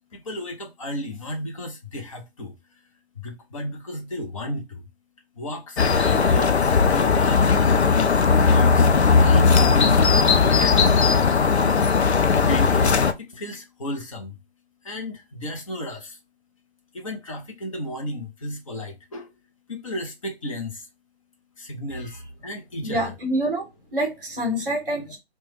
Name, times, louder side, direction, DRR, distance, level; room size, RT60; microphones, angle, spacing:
voice 1, 0.1-2.6 3.1-4.8 5.4-7.5 8.3-10.0 10.5-11.4 12.4-14.4 14.8-16.2 16.9-19.3 19.7-20.9 21.6-23.1, equal, 30° left, 0.7 m, -33 dB
sound 1, 5.8-13.1, left 5 dB, 85° left, 0.5 m, -18 dB
voice 2, 22.8-25.2, right 1 dB, 10° right, 0.7 m, -27 dB
3.0 x 2.2 x 3.1 m
figure-of-eight pair, 150°, 32 cm